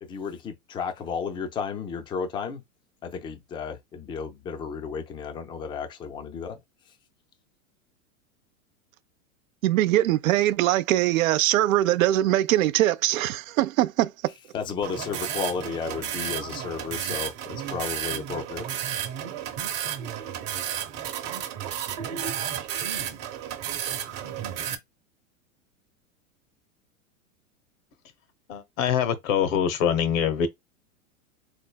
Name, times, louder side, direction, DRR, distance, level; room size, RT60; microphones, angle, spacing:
voice 1, 0.0-2.6 3.0-6.6 14.5-19.1, left 6 dB, 10° left, 0.4 m, -33 dB
voice 2, 9.6-14.3, right 14 dB, 70° right, 0.5 m, -22 dB
sound 1, 14.8-24.8, right 10 dB, 40° right, 0.8 m, -32 dB
voice 3, 28.5-30.5, left 8 dB, 65° left, 0.9 m, -24 dB
3.7 x 3.3 x 2.2 m
hypercardioid pair, 120°, 43 cm